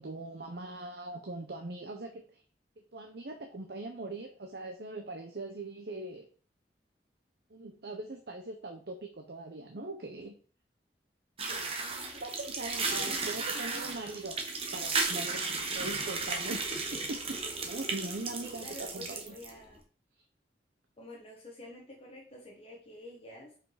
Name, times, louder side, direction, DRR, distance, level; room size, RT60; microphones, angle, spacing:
voice 1, 0.0-2.4 2.9-6.3 7.5-10.4 11.5-11.7 12.2-14.4 14.7-17.2 17.6-19.3, right 2 dB, 65° right, 4 dB, 0.8 m, -41 dB
sound 1, 11.4-19.5, right 4 dB, 35° right, 1.2 m, -35 dB
voice 2, 11.5-12.2 12.6-14.0 18.4-19.8 21.0-23.6, left 1 dB, 35° left, -2 dB, 1.5 m, -49 dB
5.5 x 5.0 x 4.9 m, 0.41 s
head